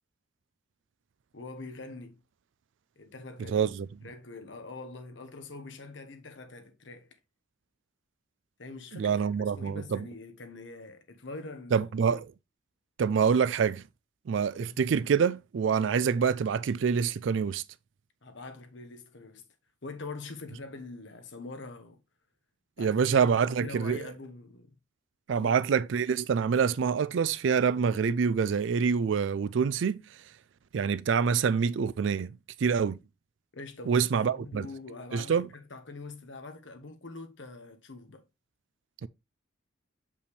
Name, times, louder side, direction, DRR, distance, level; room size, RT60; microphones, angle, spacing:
voice 1, 1.3-2.2 3.0-3.6 4.0-7.1 8.6-11.9 14.6-14.7 18.2-19.4 19.8-22.0 22.8-24.7 25.3-25.7 33.5-38.2, left 3 dB, 70° left, 1.2 m, -44 dB
voice 2, 3.5-3.9 8.9-10.1 11.7-12.3 13.0-13.8 14.3-17.6 22.8-24.0 25.3-30.0 30.7-33.0 33.9-34.7 35.1-35.5 39.0-39.1, right 6 dB, 70° right, 0.4 m, -26 dB
6.9 x 5.2 x 3.2 m
head